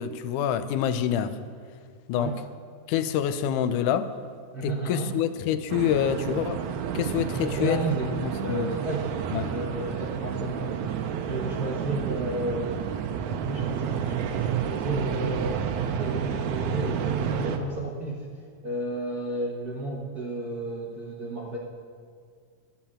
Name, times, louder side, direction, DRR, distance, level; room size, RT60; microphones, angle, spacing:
voice 1, 0.0-1.4 2.1-2.4 2.9-4.1 4.6-6.7 6.9-7.8 8.2-8.7 9.3-9.5, left 9 dB, 90° left, 12 dB, 2.2 m, -26 dB
voice 2, 4.5-5.1 7.3-8.1 8.4-9.1 9.5-12.9 13.4-18.3 18.6-21.6, right 2 dB, 60° right, -3 dB, 0.9 m, -32 dB
sound 1, 5.7-17.6, right 8 dB, 80° right, 2.1 m, -30 dB
11.5 x 8.9 x 7.4 m, 2.2 s
omnidirectional pair, 3.5 m